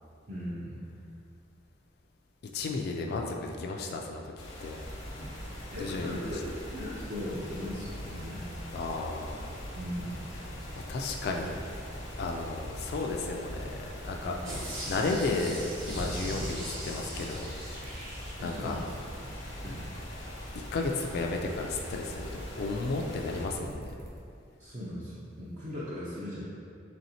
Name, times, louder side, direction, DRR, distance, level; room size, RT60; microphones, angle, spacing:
voice 1, 0.3-0.8 5.7-8.4 9.8-10.2 14.3-14.6 18.4-18.9 19.6-19.9 24.6-26.4, left 1 dB, 40° right, -9 dB, 0.5 m, -38 dB
voice 2, 2.5-4.8 5.8-6.1 8.7-9.5 10.5-11.5 12.2-13.7 14.0-17.5 18.4-18.8 20.5-23.9, left 3 dB, 55° left, 1 dB, 0.3 m, -33 dB
sound 1, 4.4-23.5, left 1 dB, 85° left, 0.8 m, -43 dB
sound 2, 4.8-24.2, equal, 60° right, 0.9 m, -46 dB
sound 3, 14.4-18.9 19.3-19.4, equal, 80° right, 1.2 m, -40 dB
4.1 x 3.4 x 2.7 m, 2.4 s
head